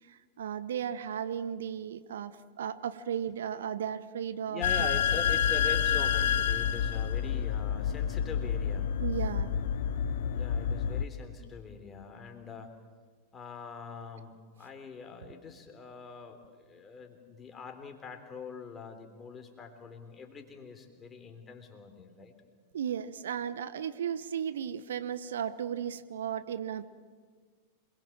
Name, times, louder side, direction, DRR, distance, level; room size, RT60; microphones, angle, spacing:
voice 1, 0.1-4.9 9.0-9.6 22.7-26.9, right 8 dB, 65° right, 14 dB, 0.9 m, -35 dB
voice 2, 4.5-8.9 10.3-12.7 13.3-22.3, left 5 dB, 20° left, 4 dB, 3.6 m, -43 dB
sound 1, 4.6-11.0, left 8 dB, 55° left, 1.0 m, -29 dB
27.0 x 21.5 x 7.5 m, 1.5 s
figure-of-eight pair, 90°, 0 cm